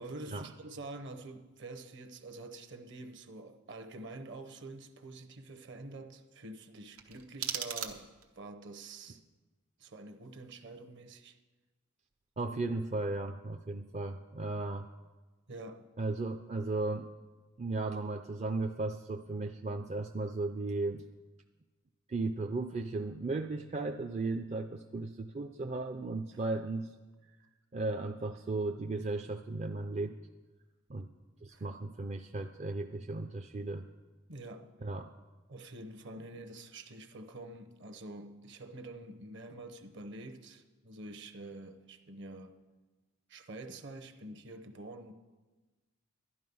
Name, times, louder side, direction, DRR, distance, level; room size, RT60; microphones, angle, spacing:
voice 1, 0.0-9.2 9.8-11.4 15.5-15.9 26.3-26.4 31.5-31.7 34.3-34.7 35.5-42.6 43.3-45.1, right 2 dB, 55° right, 0.9 m, -47 dB
sound 1, 6.9-8.4, right 9 dB, 90° right, 1.0 m, -39 dB
voice 2, 12.4-14.9 16.0-17.1 17.6-21.0 22.1-26.9 27.7-30.1 30.9-31.1 31.4-33.9 34.8-35.1, right 2 dB, 30° right, 0.4 m, -35 dB
11.5 x 11.0 x 5.4 m
head